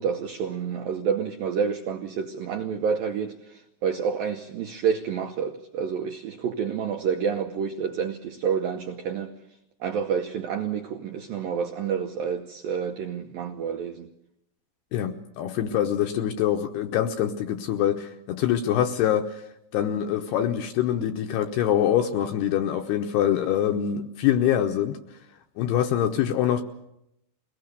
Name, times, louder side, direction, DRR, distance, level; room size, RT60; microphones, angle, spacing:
voice 1, 0.0-9.3 9.8-14.1, right 7 dB, 90° right, 2.0 m, -29 dB
voice 2, 14.9-19.4 19.7-25.0 25.6-26.6, left 10 dB, 75° left, 2.5 m, -24 dB
22.5 x 18.5 x 6.8 m
omnidirectional pair, 5.4 m